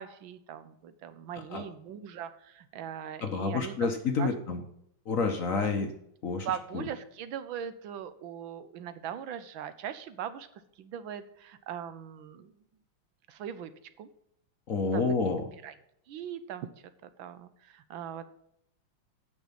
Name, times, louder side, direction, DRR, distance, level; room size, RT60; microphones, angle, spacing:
voice 1, 0.0-3.9 4.2-4.3 6.4-10.5 10.8-12.5 13.3-13.7 14.0-14.1 14.9-15.0 15.6-15.7 16.1-16.7 17.0-18.3, right 9 dB, 80° right, 12 dB, 1.5 m, -40 dB
voice 2, 3.2-4.6 5.1-5.9 6.2-6.5 6.7-6.9 14.7-15.4, left 4 dB, 50° left, 5 dB, 1.1 m, -29 dB
8.8 x 6.2 x 5.7 m, 0.74 s
omnidirectional pair, 2.2 m